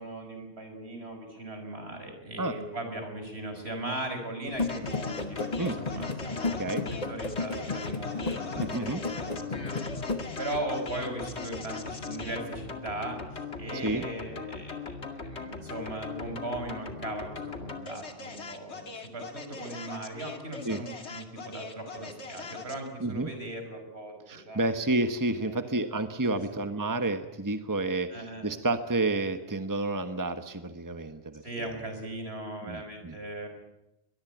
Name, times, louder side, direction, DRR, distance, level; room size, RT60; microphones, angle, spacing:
voice 1, 0.0-24.7 25.4-25.8 26.3-26.4 28.1-28.5 31.4-33.5, right 1 dB, 70° right, 5 dB, 6.0 m, -38 dB
sound 1, 4.4-10.3, left 3 dB, 40° left, 1.5 m, -34 dB
sound 2, 4.6-22.9, left 4 dB, 90° left, 2.6 m, -39 dB
voice 2, 8.6-9.0 13.7-14.0 20.6-20.8 23.0-23.3 24.3-31.7 32.6-33.2, right 2 dB, 20° right, 8 dB, 1.3 m, -30 dB
23.0 x 21.5 x 9.2 m, 0.90 s
omnidirectional pair, 1.1 m